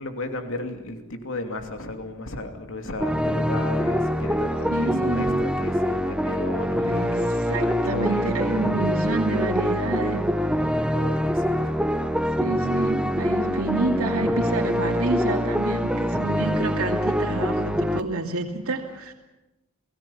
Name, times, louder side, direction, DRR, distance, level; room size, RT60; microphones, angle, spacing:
voice 1, 0.0-8.8 10.9-11.8 16.4-16.7, left 2 dB, 60° left, 5 dB, 2.8 m, -34 dB
sound 1, 3.0-18.0, equal, 5° right, 0.9 m, -24 dB
voice 2, 4.7-5.3 6.8-10.2 10.6-11.0 12.4-19.1, right 3 dB, 70° right, 2 dB, 2.6 m, -28 dB
28.5 x 19.0 x 7.1 m, 0.98 s
head